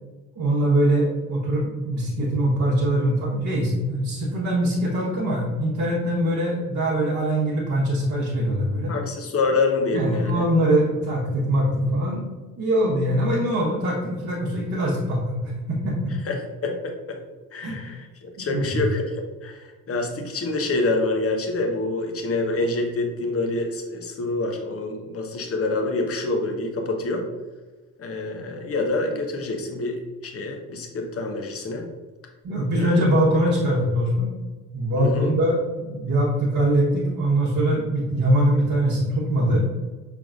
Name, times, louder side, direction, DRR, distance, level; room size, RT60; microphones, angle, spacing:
voice 1, 0.3-8.9 9.9-12.2 12.6-16.1 17.6-17.7 18.4-18.8 32.4-34.3 34.7-39.6, right 1 dB, 40° right, -6 dB, 1.2 m, -22 dB
voice 2, 8.9-10.4 16.3-16.4 16.6-17.2 17.5-19.1 19.4-27.3 28.0-30.0 30.2-31.8 32.8-32.9 35.0-35.3, left 3 dB, 35° left, 3 dB, 0.9 m, -26 dB
6.0 x 3.5 x 2.4 m, 1.3 s
figure-of-eight pair, 45°, 42 cm